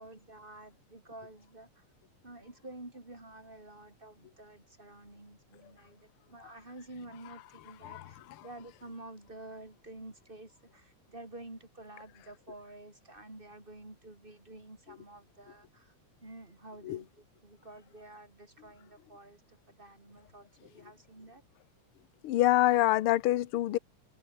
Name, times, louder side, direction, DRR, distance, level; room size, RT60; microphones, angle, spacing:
voice 1, 0.0-1.8 2.2-15.9 16.2-19.4 19.7-21.4, right 2 dB, 15° right, 4.4 m, -50 dB
voice 2, 22.2-23.8, left 14 dB, 65° left, 1.5 m, -26 dB
omnidirectional pair, 3.4 m